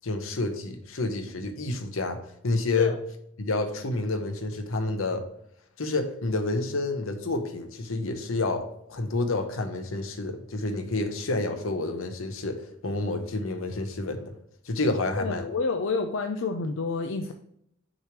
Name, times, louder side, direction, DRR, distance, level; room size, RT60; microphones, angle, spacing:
voice 1, 0.0-2.2 2.4-2.9 3.4-5.2 5.8-14.3 14.6-15.5, left 2 dB, 85° left, 7 dB, 0.9 m, -29 dB
voice 2, 15.2-17.3, left 4 dB, 65° left, 5 dB, 0.5 m, -29 dB
6.3 x 3.2 x 5.9 m, 0.73 s
head